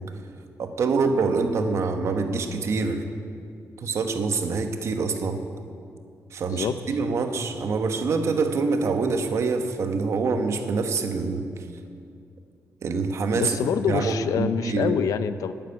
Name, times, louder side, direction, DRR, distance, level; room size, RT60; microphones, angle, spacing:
voice 1, 0.6-3.0 3.8-5.4 6.3-11.5 12.8-13.6 13.9-14.9, right 4 dB, 55° right, 6 dB, 1.2 m, -25 dB
voice 2, 13.3-15.5, left 8 dB, 90° left, 12 dB, 0.5 m, -26 dB
11.5 x 9.2 x 9.8 m, 2.4 s
wide cardioid pair, 175°, 6 cm